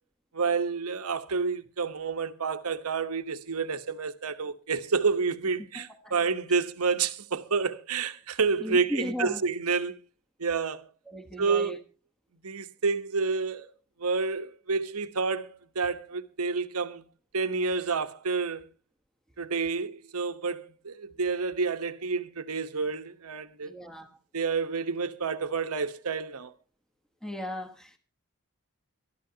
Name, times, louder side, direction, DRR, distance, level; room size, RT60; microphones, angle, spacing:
voice 1, 0.3-10.0 10.4-10.8 11.4-11.7 12.4-13.7 14.0-17.0 17.3-18.7 19.4-23.7 24.3-26.5, right 4 dB, 85° right, 1.1 m, -29 dB
voice 2, 5.7-6.1 8.6-9.4 11.1-11.8 23.6-24.2 27.2-28.0, left 1 dB, 5° left, 1.1 m, -36 dB
25.5 x 12.5 x 2.8 m
head